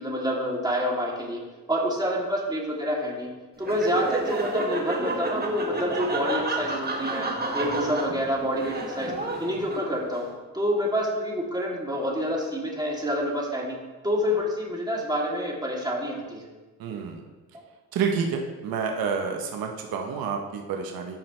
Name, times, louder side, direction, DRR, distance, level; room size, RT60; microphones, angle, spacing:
voice 1, 0.0-1.4 1.7-3.3 3.6-7.3 7.5-9.1 9.4-10.2 10.5-13.8 14.0-16.4, equal, 10° right, -3 dB, 2.8 m, -27 dB
Laughter, 3.6-10.2, right 2 dB, 25° right, 1.7 m, -30 dB
voice 2, 16.8-17.2 17.9-21.2, right 6 dB, 85° right, 3 dB, 1.0 m, -29 dB
13.5 x 5.7 x 3.2 m, 1.3 s
cardioid pair, 65°, 35 cm